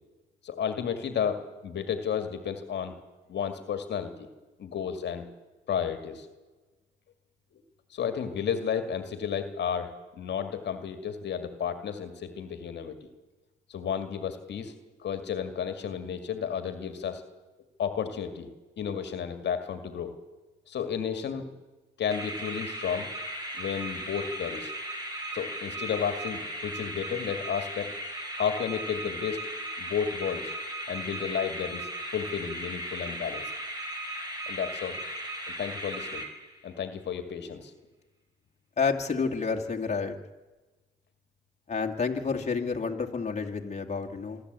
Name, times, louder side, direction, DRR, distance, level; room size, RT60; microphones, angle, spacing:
voice 1, 0.4-3.0 3.3-4.1 4.6-5.3 5.7-6.3 7.5-7.6 7.9-13.1 13.7-14.7 15.0-17.2 17.8-18.5 18.8-20.2 20.7-21.5 22.0-23.1 23.6-24.7 25.3-27.9 28.4-29.5 29.8-30.5 30.9-33.4 34.5-35.0 35.5-36.2 36.6-37.7, left 7 dB, 60° left, 7 dB, 2.1 m, -32 dB
sound 1, 22.1-36.8, right 1 dB, 20° right, 5.1 m, -37 dB
voice 2, 38.8-40.2 41.7-44.4, left 5 dB, 35° left, 2 dB, 2.3 m, -29 dB
26.0 x 12.0 x 8.2 m, 1.2 s
cardioid pair, 90°, 20 cm